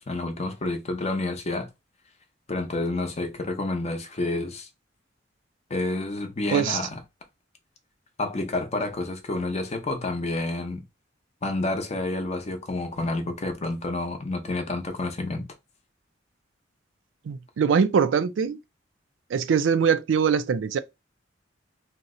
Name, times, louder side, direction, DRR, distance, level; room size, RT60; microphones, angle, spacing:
voice 1, 0.0-1.7 2.5-4.7 5.7-7.0 8.2-10.8 11.4-15.5, left 2 dB, 35° left, 0.6 m, -29 dB
voice 2, 17.3-18.6 19.3-20.8, right 6 dB, 85° right, 0.4 m, -22 dB
2.8 x 2.0 x 3.6 m
head